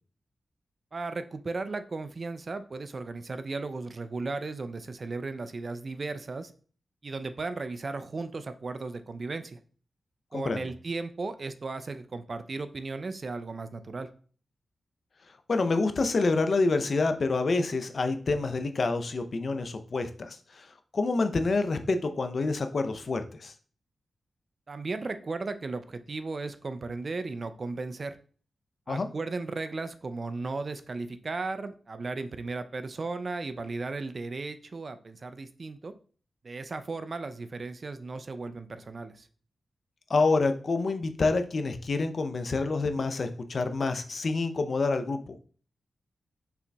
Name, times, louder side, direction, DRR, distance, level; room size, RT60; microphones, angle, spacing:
voice 1, 0.9-6.5 7.0-9.6 10.3-14.1 24.7-28.2 28.9-35.9 36.4-39.3, right 3 dB, 55° right, 10 dB, 0.5 m, -35 dB
voice 2, 10.3-10.7 15.5-23.5 28.9-29.1 40.1-45.4, left 3 dB, 60° left, 8 dB, 0.6 m, -27 dB
5.8 x 3.8 x 2.3 m, 0.42 s
cardioid pair, 50°, 0 cm